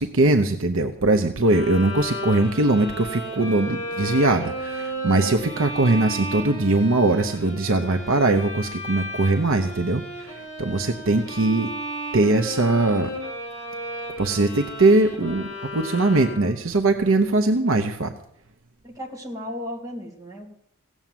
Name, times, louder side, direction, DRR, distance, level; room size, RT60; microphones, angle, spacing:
voice 1, 0.0-11.8 12.1-13.1 14.2-18.1, right 2 dB, 75° right, 6 dB, 0.9 m, -21 dB
Bowed string instrument, 1.4-16.7, equal, 10° left, 7.0 m, -34 dB
voice 2, 18.8-20.5, left 1 dB, 15° right, -2 dB, 2.6 m, -35 dB
16.0 x 7.3 x 9.2 m, 0.69 s
head